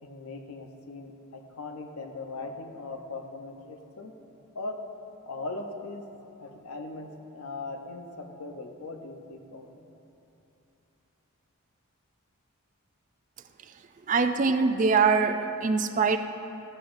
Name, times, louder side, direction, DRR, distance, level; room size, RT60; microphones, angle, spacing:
voice 1, 0.0-4.1 4.5-4.8 5.2-6.0 6.4-9.9, left 3 dB, 85° left, 4 dB, 0.8 m, -39 dB
voice 2, 14.1-16.2, right 5 dB, 35° right, 8 dB, 0.3 m, -23 dB
14.5 x 8.0 x 2.6 m, 2.9 s
head